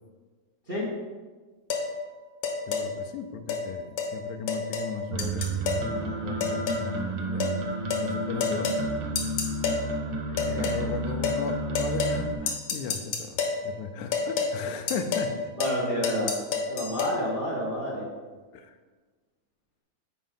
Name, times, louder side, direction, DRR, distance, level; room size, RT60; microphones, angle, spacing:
sound 1, 1.7-1.9 2.4-2.9 3.5-3.6 4.0-4.1 4.5-4.9 5.2-5.9 6.4-6.9 7.4-7.6 7.9-8.1 8.4-8.8 9.2-9.8 10.4-10.8 11.2-11.4 11.7-12.2 12.5-13.6 14.1-14.5 14.9-15.3 15.6-15.8 16.0-17.1, left 5 dB, 60° left, 1.4 m, -28 dB
voice 1, 2.7-7.6 7.9-8.8 10.4-15.5 18.5-18.7, left 6 dB, 85° left, 7 dB, 2.1 m, -36 dB
sound 2, 5.1-12.3, right 2 dB, 80° right, 1.1 m, -31 dB
voice 2, 10.3-10.8 15.6-16.3 16.7-18.0, equal, 60° right, -5 dB, 0.5 m, -30 dB
8.9 x 5.1 x 3.8 m, 1.4 s
omnidirectional pair, 3.4 m